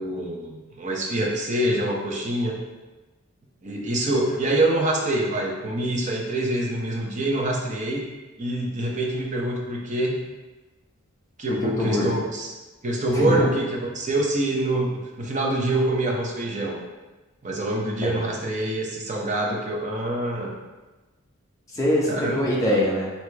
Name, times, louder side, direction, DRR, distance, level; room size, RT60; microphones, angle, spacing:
voice 1, 0.0-2.6 3.6-8.0 8.4-10.2 11.4-12.5 12.8-16.8 17.4-20.6 22.1-22.4, right 1 dB, 35° right, -1 dB, 0.7 m, -25 dB
voice 2, 11.6-12.1 13.1-13.5 18.0-18.2 21.7-23.1, left 1 dB, 15° left, -5 dB, 0.9 m, -23 dB
4.6 x 2.8 x 3.3 m, 1.2 s
head